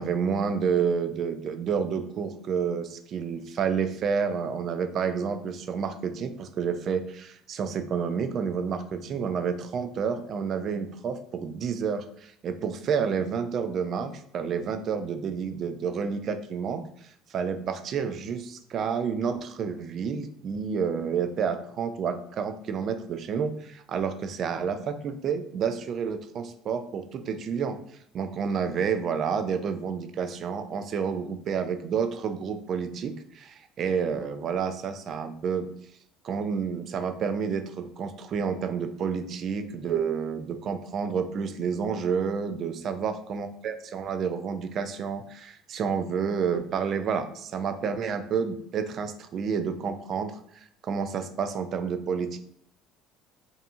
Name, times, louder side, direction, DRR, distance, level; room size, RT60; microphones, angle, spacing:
voice 1, 0.0-27.8 28.1-35.7 36.2-52.4, right 6 dB, 50° right, 8 dB, 0.3 m, -29 dB
2.6 x 2.5 x 2.4 m, 0.69 s
supercardioid pair, 95°, 0 cm